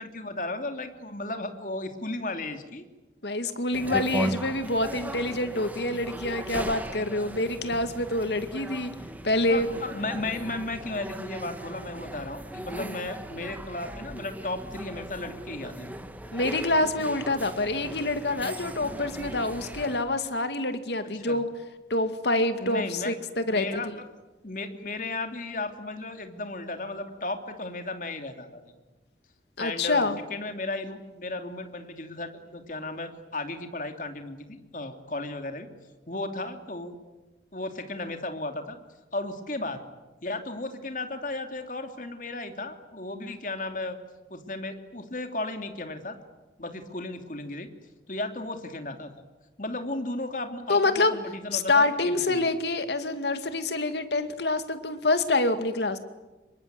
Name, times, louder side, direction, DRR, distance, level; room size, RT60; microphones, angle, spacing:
voice 1, 0.0-2.9 9.5-15.9 21.3-21.4 22.6-23.1 23.5-23.9 24.4-28.7 29.6-35.7 36.1-37.0 37.5-38.8 39.1-39.8 40.2-44.0 44.3-46.2 46.6-47.7 48.1-49.1 49.6-52.5, left 2 dB, 45° left, 6 dB, 2.8 m, -35 dB
voice 2, 3.2-8.9 9.2-9.7 12.8-13.0 16.3-21.5 21.9-23.8 29.6-30.2 50.7-51.1 51.5-56.0, left 2 dB, 75° left, 9 dB, 2.3 m, -26 dB
sound 1, 3.7-20.0, right 1 dB, 10° right, 1.8 m, -38 dB
26.5 x 23.5 x 9.5 m, 1.1 s
head